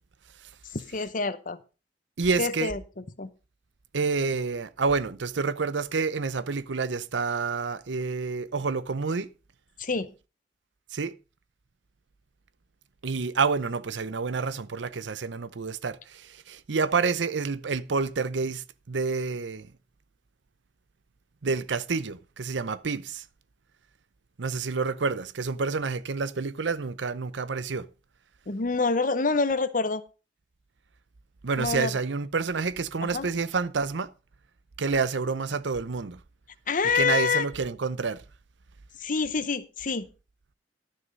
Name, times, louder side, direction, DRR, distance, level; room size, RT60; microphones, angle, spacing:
voice 1, 0.6-1.6 2.4-3.3 9.8-10.1 28.5-30.0 31.6-32.0 33.0-33.3 36.7-37.5 39.0-40.1, left 4 dB, 50° left, 0.9 m, -27 dB
voice 2, 2.2-2.7 3.9-9.3 10.9-11.1 13.0-19.7 21.4-23.2 24.4-27.9 31.4-34.1 34.8-36.2 36.9-38.2, right 4 dB, 85° right, 0.7 m, -28 dB
12.0 x 6.6 x 5.2 m
head